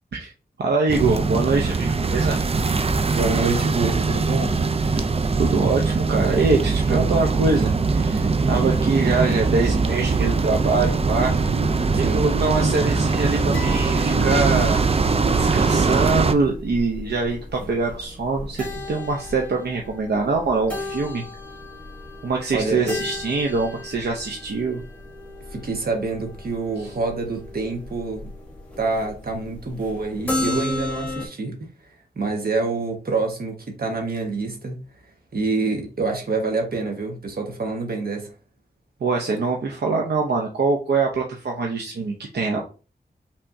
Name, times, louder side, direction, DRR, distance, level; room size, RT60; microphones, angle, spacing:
voice 1, 0.6-2.4 5.4-11.4 11.9-14.9 15.4-21.2 22.2-24.8 26.8-26.9 39.0-42.6, right 3 dB, 85° right, 0.7 m, -24 dB
sound 1, 0.9-16.3, right 4 dB, 35° right, 0.4 m, -21 dB
voice 2, 3.1-4.6 12.0-12.3 22.5-23.0 25.5-28.3 28.8-31.7 32.1-34.8 35.3-38.3, right 3 dB, 60° right, 1.4 m, -26 dB
sound 2, 12.3-31.3, left 1 dB, 10° left, 1.3 m, -35 dB
5.7 x 3.4 x 2.7 m
wide cardioid pair, 115°, 17 cm